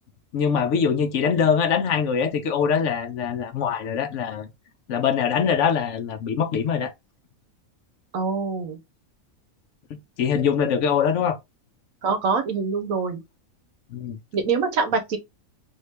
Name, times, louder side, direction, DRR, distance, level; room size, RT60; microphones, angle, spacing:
voice 1, 0.3-4.5 4.9-6.9 10.2-11.4 13.9-14.2, left 7 dB, 65° left, 0.9 m, -23 dB
voice 2, 8.1-8.8 12.0-13.2 14.3-15.2, right 5 dB, 70° right, 1.2 m, -24 dB
3.6 x 2.4 x 3.2 m
omnidirectional pair, 1.5 m